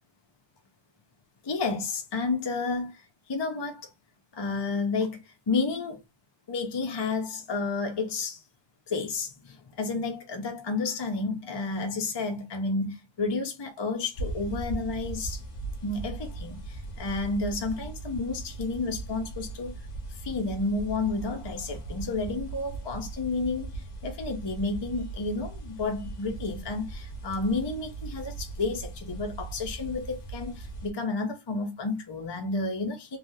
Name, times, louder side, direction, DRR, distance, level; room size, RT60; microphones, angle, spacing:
voice 1, 1.4-3.9 4.3-6.0 6.5-8.4 8.9-15.4 15.8-19.8 20.1-33.2, left 3 dB, 40° left, 0.3 m, -31 dB
sound 1, 14.1-30.9, right 2 dB, 90° left, 1.2 m, -39 dB
3.3 x 2.2 x 2.6 m
omnidirectional pair, 1.2 m